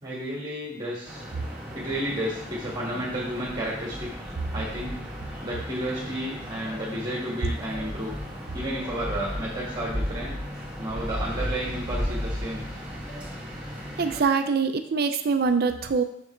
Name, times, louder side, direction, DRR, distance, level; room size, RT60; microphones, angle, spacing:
voice 1, 0.0-1.2 1.7-4.1 4.5-5.0 5.4-8.1 8.5-10.4 10.8-12.6, equal, 20° right, -6 dB, 1.7 m, -32 dB
sound 1, 1.0-14.2, equal, 5° right, 2.1 m, -35 dB
sound 2, 6.7-6.8 7.7-7.9 8.8-9.0 9.9-10.0 10.9-11.1 12.0-12.2 13.1-13.2 14.2-14.3, right 1 dB, 20° left, 2.7 m, -45 dB
voice 2, 14.0-16.0, right 5 dB, 50° right, 8 dB, 0.5 m, -24 dB
6.8 x 6.6 x 3.3 m, 0.69 s
head